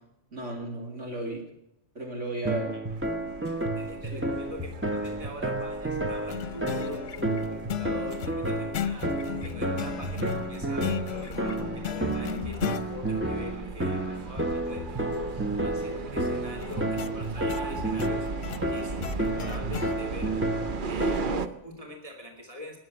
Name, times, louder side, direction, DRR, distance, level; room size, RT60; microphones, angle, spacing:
voice 1, 0.3-1.4 2.0-2.8 4.1-4.3, right 2 dB, 70° right, 1 dB, 3.7 m, -34 dB
sound 1, 2.4-21.5, right 1 dB, 10° right, 1.2 m, -31 dB
sound 2, 2.9-21.5, right 4 dB, 50° right, 0.9 m, -38 dB
voice 2, 3.7-20.4 20.8-22.8, left 2 dB, 30° right, 1 dB, 2.8 m, -43 dB
sound 3, 6.3-12.9 16.6-20.0, left 10 dB, 65° left, 1.0 m, -36 dB
19.5 x 7.7 x 9.7 m, 0.82 s
omnidirectional pair, 1.2 m